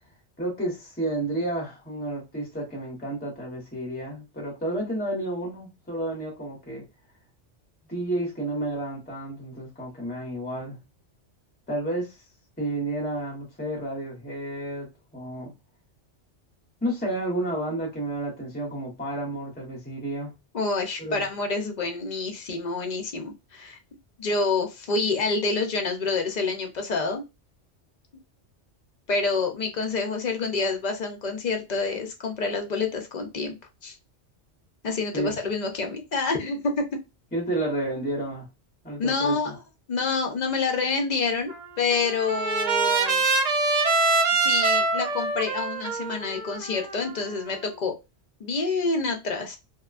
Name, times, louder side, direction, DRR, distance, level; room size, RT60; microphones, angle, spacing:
voice 1, 0.4-6.8 7.9-10.8 11.7-12.1 12.6-15.5 16.8-20.3 21.0-21.2 35.1-35.3 37.3-38.5 38.8-39.6, right 1 dB, 10° left, 0.8 m, -31 dB
voice 2, 20.5-23.8 24.2-27.2 29.1-33.5 33.8-34.0 34.8-36.9 39.0-39.6 39.9-43.2 44.3-47.9 48.4-49.6, left 4 dB, 50° left, 0.6 m, -27 dB
Trumpet, 41.5-47.7, right 3 dB, 55° right, 0.4 m, -25 dB
2.8 x 2.1 x 2.4 m
omnidirectional pair, 1.2 m